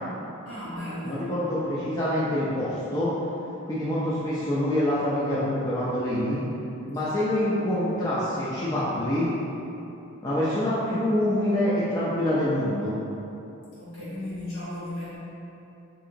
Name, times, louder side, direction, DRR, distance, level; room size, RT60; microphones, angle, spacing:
voice 1, 0.4-1.2 7.2-7.3 13.8-15.2, left 1 dB, 65° left, -11 dB, 1.5 m, -35 dB
voice 2, 1.0-3.1 3.7-6.4 6.9-9.3 10.2-12.9, left 1 dB, 15° left, -10 dB, 0.3 m, -26 dB
3.6 x 2.8 x 2.5 m, 2.9 s
head